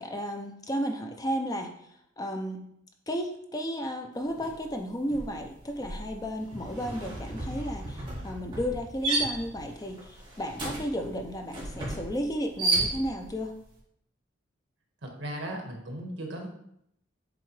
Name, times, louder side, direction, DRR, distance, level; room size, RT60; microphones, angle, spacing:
voice 1, 0.0-1.9 2.2-2.7 3.1-13.5, equal, 20° left, 4 dB, 0.5 m, -33 dB
sound 1, 4.4-4.6 4.9-13.4, right 2 dB, 25° right, 2.2 m, -33 dB
voice 2, 15.0-16.5, right 1 dB, 70° right, 1 dB, 1.4 m, -37 dB
7.8 x 3.8 x 3.2 m, 0.74 s
head